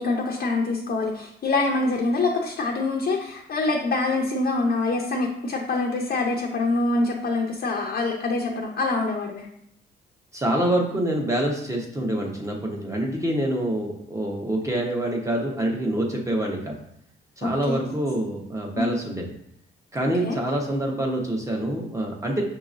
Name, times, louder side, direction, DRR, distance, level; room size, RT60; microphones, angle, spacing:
voice 1, 0.0-9.5 17.4-17.8 18.7-18.9 20.2-20.4, left 3 dB, 50° left, -1 dB, 0.7 m, -25 dB
voice 2, 10.3-16.8 17.4-19.3 19.9-22.4, right 1 dB, 15° right, 0 dB, 1.0 m, -26 dB
6.0 x 2.9 x 2.6 m, 0.72 s
cardioid pair, 90°, 20 cm